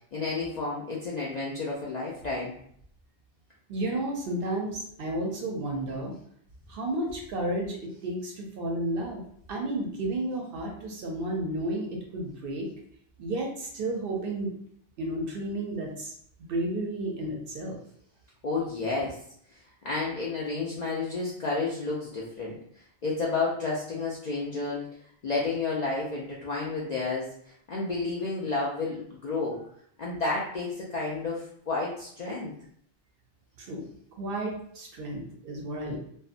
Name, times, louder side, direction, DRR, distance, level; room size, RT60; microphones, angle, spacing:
voice 1, 0.1-2.5 18.4-19.2 19.5-24.9 25.2-29.6 30.0-32.5, left 3 dB, 60° left, -5 dB, 0.4 m, -31 dB
voice 2, 3.7-6.1 6.7-9.2 9.5-12.7 13.2-14.5 15.0-16.1 16.4-17.8 33.6-33.8 34.2-36.0, right 1 dB, 60° right, 0 dB, 0.7 m, -32 dB
2.7 x 2.1 x 2.4 m, 0.65 s
omnidirectional pair, 1.2 m